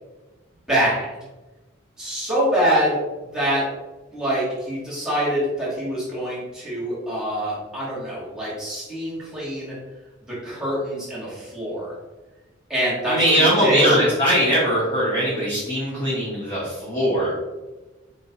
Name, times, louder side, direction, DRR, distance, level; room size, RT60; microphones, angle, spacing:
voice 1, 0.7-1.1 2.0-3.0 3.3-3.6 4.1-9.7 10.2-12.0 12.7-14.0, equal, 5° right, -8 dB, 1.4 m, -24 dB
voice 2, 13.1-17.3, equal, 25° left, -8 dB, 1.0 m, -21 dB
4.1 x 3.2 x 2.8 m, 1.2 s
head